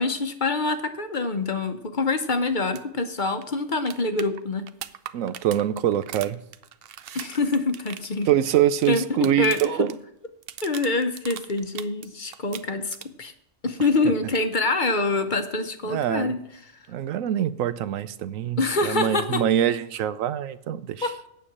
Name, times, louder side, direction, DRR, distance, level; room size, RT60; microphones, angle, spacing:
voice 1, 0.0-4.7 7.1-8.3 8.9-9.6 10.6-13.3 13.6-16.4 18.6-19.4 21.0-21.3, left 3 dB, 45° left, 8 dB, 0.9 m, -25 dB
sound 1, 2.7-2.8 3.1-3.2 3.4-10.0 10.2-12.1 12.3-13.3 15.3-15.4, right 10 dB, 60° right, 0.7 m, -40 dB
voice 2, 5.1-6.4 8.3-10.0 15.9-16.3 16.9-21.1, right 11 dB, 85° right, 14 dB, 1.0 m, -24 dB
9.0 x 7.0 x 8.6 m, 0.80 s
omnidirectional pair, 1.3 m